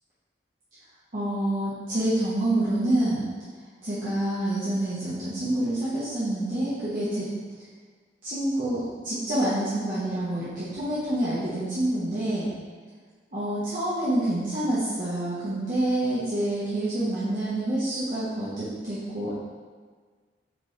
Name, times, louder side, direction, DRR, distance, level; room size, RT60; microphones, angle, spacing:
voice 1, 1.1-3.2 3.8-7.3 8.2-12.5 13.3-19.3, right 1 dB, 45° right, -11 dB, 1.3 m, -27 dB
8.5 x 3.5 x 3.3 m, 1.5 s
head